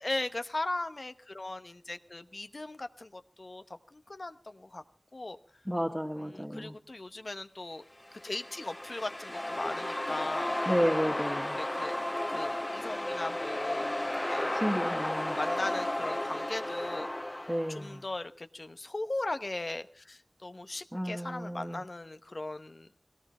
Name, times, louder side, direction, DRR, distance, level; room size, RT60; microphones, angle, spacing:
voice 1, 0.0-3.6 3.9-4.8 5.1-5.4 6.2-7.8 8.1-10.5 11.1-11.3 11.5-11.9 12.3-13.9 14.3-14.5 15.3-17.1 17.7-22.9, left 2 dB, 60° left, 10 dB, 0.9 m, -38 dB
voice 2, 5.7-6.7 10.7-11.6 14.5-15.4 17.5-18.0 20.9-21.8, equal, 5° right, 1 dB, 1.4 m, -32 dB
sound 1, 8.1-17.9, left 1 dB, 30° left, 1.3 m, -33 dB
18.0 x 17.5 x 4.2 m, 0.38 s
wide cardioid pair, 40°, 0 cm